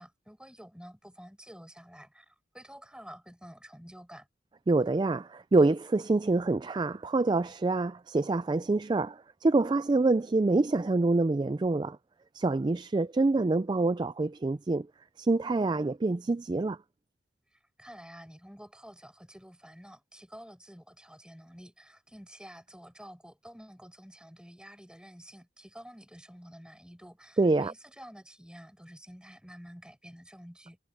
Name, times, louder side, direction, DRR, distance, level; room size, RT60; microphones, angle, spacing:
voice 1, 0.0-4.3 17.5-30.8, equal, 5° right, 4.7 m, -50 dB
voice 2, 4.7-12.0 12.3-14.9 15.2-16.8 27.4-27.7, right 3 dB, 25° right, 0.3 m, -26 dB
head